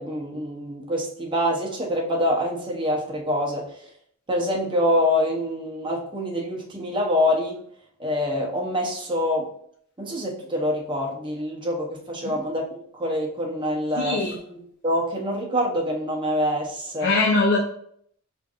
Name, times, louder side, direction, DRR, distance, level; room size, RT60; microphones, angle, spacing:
voice 1, 0.0-3.7 4.3-7.6 8.0-9.5 10.0-17.1, left 1 dB, 25° right, -1 dB, 0.7 m, -25 dB
voice 2, 14.0-14.3 17.0-17.6, left 3 dB, 55° left, -3 dB, 0.6 m, -21 dB
5.1 x 2.5 x 2.4 m, 0.65 s
head